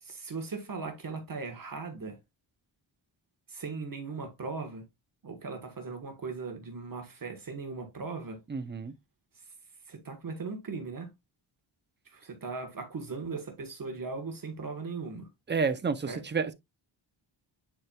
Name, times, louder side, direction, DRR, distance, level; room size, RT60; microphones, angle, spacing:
voice 1, 0.0-2.2 3.5-4.9 5.2-8.4 9.9-11.1 12.0-15.3 16.0-16.2, right 4 dB, 45° right, 1.4 m, -38 dB
voice 2, 8.5-8.9 15.5-16.5, right 5 dB, 25° right, 0.6 m, -30 dB
9.8 x 4.4 x 2.3 m
wide cardioid pair, 180°, 47 cm